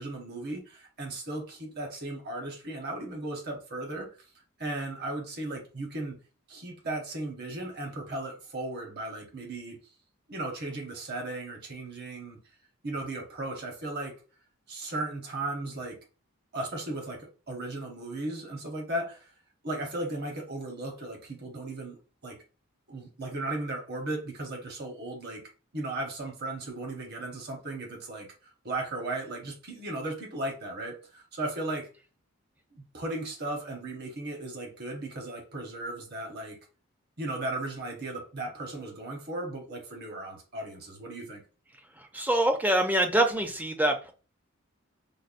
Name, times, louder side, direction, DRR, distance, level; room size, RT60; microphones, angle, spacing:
voice 1, 0.0-4.1 4.6-6.2 6.5-9.8 10.3-12.4 12.8-14.1 14.7-16.0 16.5-19.3 19.6-22.4 22.9-25.4 25.7-31.9 32.7-36.6 37.2-41.4, right 2 dB, 50° right, 0.9 m, -36 dB
voice 2, 42.0-44.1, right 1 dB, 10° right, 0.4 m, -25 dB
5.2 x 2.0 x 2.4 m
head